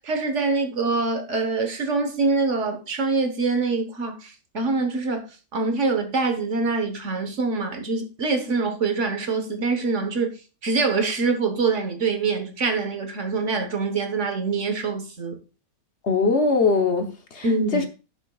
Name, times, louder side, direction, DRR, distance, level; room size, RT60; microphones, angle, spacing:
voice 1, 0.0-10.3 10.6-15.4 17.4-17.9, right 4 dB, 55° right, 1.4 m, -25 dB
voice 2, 16.0-17.9, left 4 dB, 55° left, 1.2 m, -22 dB
16.0 x 6.8 x 2.3 m
omnidirectional pair, 1.5 m